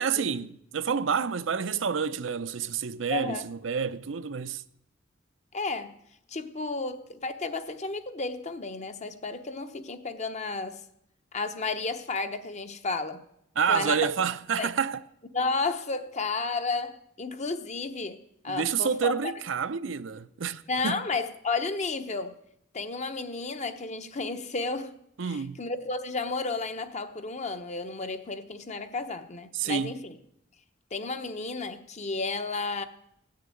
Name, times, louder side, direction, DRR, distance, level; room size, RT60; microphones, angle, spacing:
voice 1, 0.0-4.6 13.6-15.0 18.5-21.0 25.2-25.6 29.5-29.9, right 6 dB, 75° right, 0.6 m, -29 dB
voice 2, 3.1-3.5 5.5-6.0 6.3-10.8 11.3-13.2 13.7-14.1 14.6-14.7 15.3-18.2 18.4-19.3 20.7-22.3 22.7-24.9 25.2-30.2 30.9-32.8, left 3 dB, 35° left, 0.9 m, -32 dB
16.5 x 6.7 x 9.1 m
head